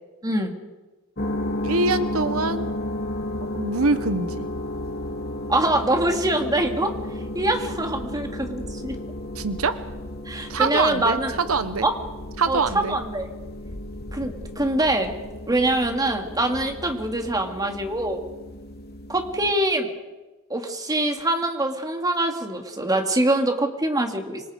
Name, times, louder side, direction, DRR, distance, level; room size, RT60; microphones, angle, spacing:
sound 1, 1.2-19.5, left 1 dB, 45° left, 2.5 m, -33 dB
voice 1, 1.6-2.7 3.5-4.5 9.3-9.8 10.5-11.9 12.4-13.0, right 4 dB, 85° right, 12 dB, 1.1 m, -24 dB
voice 2, 5.5-6.9 7.3-9.0 10.3-11.4 11.8-11.9 12.5-13.3 14.1-15.1 15.5-18.2 19.1-19.9 20.5-24.4, right 1 dB, 15° right, 4 dB, 2.6 m, -24 dB
26.5 x 25.5 x 5.2 m, 1.2 s
head